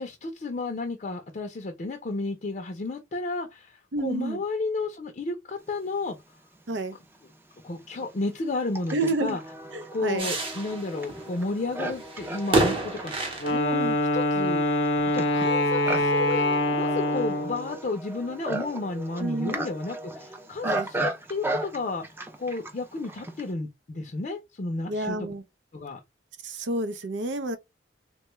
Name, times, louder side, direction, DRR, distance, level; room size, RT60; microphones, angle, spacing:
voice 1, 0.0-6.2 7.6-9.4 9.9-13.8 14.1-14.6 15.1-16.5 16.7-22.1 22.4-25.2 25.7-26.0, left 3 dB, 45° left, 0.5 m, -32 dB
voice 2, 3.9-4.4 6.7-7.0 8.9-9.4 9.7-10.3 13.7-14.0 19.2-19.6 20.6-20.9 24.9-25.4 26.4-27.6, right 2 dB, 90° right, 0.6 m, -29 dB
Livestock farm animals working animals, 6.8-6.9 7.6-23.5, right 2 dB, 15° right, 0.4 m, -36 dB
sound 1, 10.2-14.1 14.7-14.8 15.0-15.6 16.0-16.4, right 2 dB, 30° right, 0.8 m, -30 dB
Wind instrument woodwind instrument, 13.4-17.7, left 1 dB, 90° left, 0.7 m, -24 dB
3.2 x 2.2 x 3.0 m
head